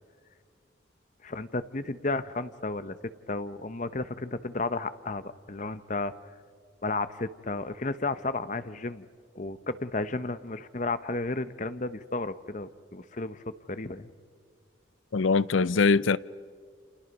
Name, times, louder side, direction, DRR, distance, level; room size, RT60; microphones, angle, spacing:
voice 1, 1.2-3.0 3.3-6.1 6.8-9.1 9.4-14.1, left 3 dB, 40° left, 0.9 m, -33 dB
voice 2, 15.1-16.2, left 4 dB, 85° left, 0.6 m, -22 dB
29.0 x 28.0 x 5.3 m
head